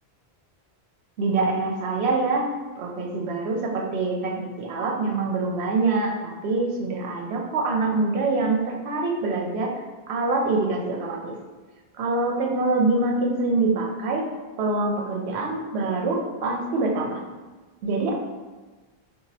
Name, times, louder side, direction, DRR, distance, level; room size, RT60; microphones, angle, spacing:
voice 1, 1.2-2.4 2.8-11.3 11.9-14.3 14.6-17.2 17.8-18.1, right 3 dB, 80° right, 0 dB, 0.8 m, -25 dB
4.1 x 2.4 x 2.6 m, 1.3 s
omnidirectional pair, 1.1 m